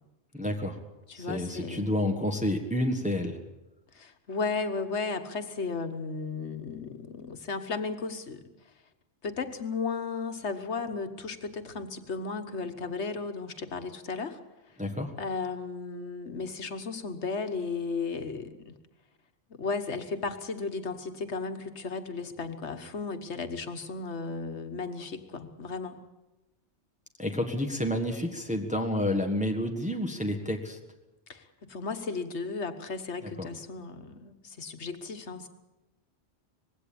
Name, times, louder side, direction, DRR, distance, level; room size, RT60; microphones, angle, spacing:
voice 1, 0.3-0.8 1.1-3.4 14.8-15.1 27.2-30.8 33.4-33.5, left 1 dB, 5° right, 3 dB, 1.6 m, -29 dB
voice 2, 1.1-1.9 3.9-8.4 9.2-14.4 15.2-18.8 19.5-26.0 27.5-27.6 31.3-35.5, left 4 dB, 85° left, 8 dB, 1.7 m, -35 dB
20.0 x 16.5 x 8.7 m, 1.0 s
omnidirectional pair, 1.1 m